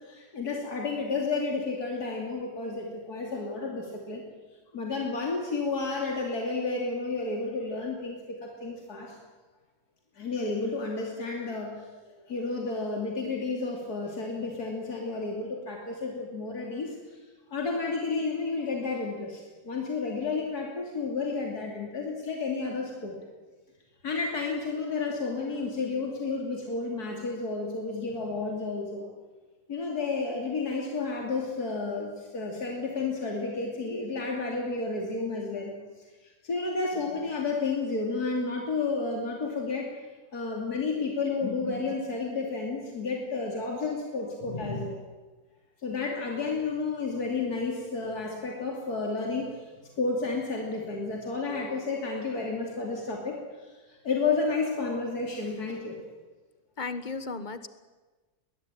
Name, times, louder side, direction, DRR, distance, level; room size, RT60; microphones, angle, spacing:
voice 1, 0.0-4.2 4.7-9.1 10.2-17.2 17.5-23.2 24.0-29.1 29.7-35.8 36.2-39.9 40.3-44.9 45.8-56.0, left 3 dB, 80° left, 0 dB, 3.4 m, -31 dB
voice 2, 44.4-45.0 56.8-57.7, left 3 dB, 30° left, 11 dB, 1.3 m, -35 dB
22.5 x 19.5 x 9.2 m, 1.3 s
omnidirectional pair, 1.7 m